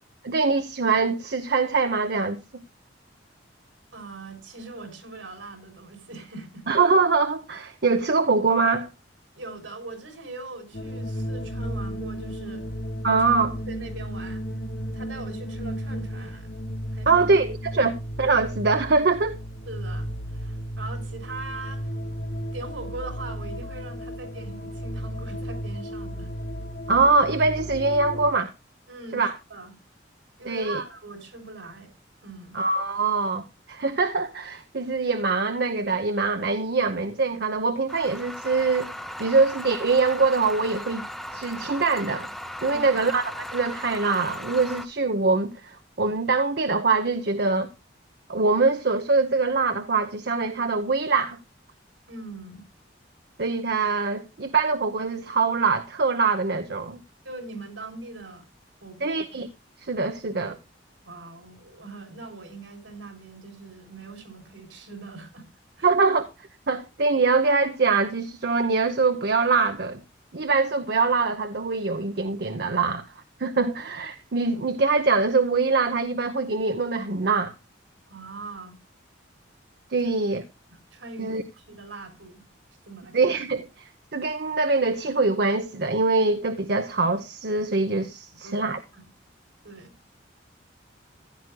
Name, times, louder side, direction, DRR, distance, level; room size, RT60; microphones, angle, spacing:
voice 1, 0.2-2.6 6.7-8.9 13.0-13.6 17.1-17.9 18.2-19.4 26.9-28.5 29.1-29.3 30.5-30.8 32.5-38.9 39.2-41.1 41.3-42.3 42.6-47.7 48.3-51.4 53.4-57.0 59.0-59.5 59.8-60.6 65.8-66.3 66.7-70.0 70.3-73.1 73.4-77.5 79.9-80.4 81.2-81.4 83.1-83.6 84.1-88.8, right 4 dB, 55° right, 0.8 m, -23 dB
voice 2, 3.9-6.7 9.4-12.7 13.7-14.5 14.9-16.5 16.9-17.3 19.6-21.9 22.5-26.3 28.9-29.8 30.4-31.9 32.2-32.6 42.7-43.0 52.1-52.6 57.2-58.5 58.8-59.2 61.1-65.5 65.8-65.9 78.1-78.8 80.0-80.1 80.7-81.4 81.7-82.5 82.9-83.4 88.4-89.1 89.6-89.9, right 3 dB, 85° right, 3.8 m, -41 dB
sound 1, 10.7-28.3, equal, 60° left, 1.6 m, -34 dB
sound 2, 37.9-44.9, equal, ahead, 0.7 m, -37 dB
15.5 x 11.0 x 2.2 m
head